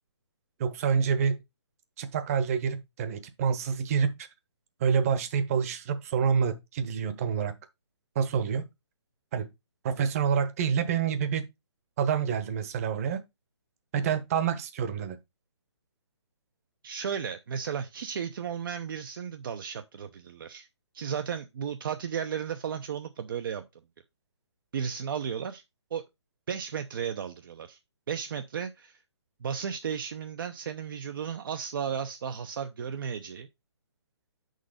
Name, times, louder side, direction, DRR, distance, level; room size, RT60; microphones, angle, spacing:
voice 1, 0.6-1.4 2.0-4.3 4.8-7.5 8.1-8.6 9.3-9.5 9.8-11.5 12.0-13.2 13.9-15.2, right 7 dB, 30° right, 1.1 m, -27 dB
voice 2, 16.8-20.7 20.9-23.7 24.7-25.6 25.9-26.1 26.5-27.8 28.1-29.0 29.4-33.5, right 7 dB, 50° right, 0.7 m, -34 dB
6.5 x 5.0 x 5.0 m
hypercardioid pair, 155°, 14 cm